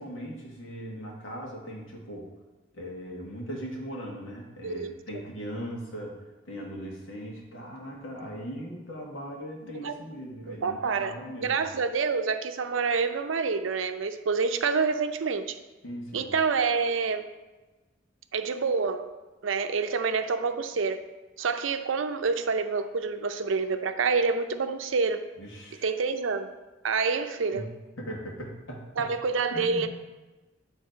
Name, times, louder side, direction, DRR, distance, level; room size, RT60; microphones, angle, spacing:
voice 1, 0.0-2.3 2.7-6.2 6.4-11.7 15.8-16.3 25.4-25.9 27.5-27.6 28.0-29.1 29.5-29.9, equal, 90° left, -1 dB, 1.7 m, -39 dB
voice 2, 4.6-4.9 9.8-9.9 10.5-11.2 11.4-15.5 16.1-17.3 18.3-19.1 19.4-21.0 21.4-25.3 25.8-26.5 26.8-27.7 29.0-29.9, right 5 dB, 85° right, 8 dB, 0.5 m, -27 dB
9.3 x 3.4 x 5.1 m, 1.2 s
head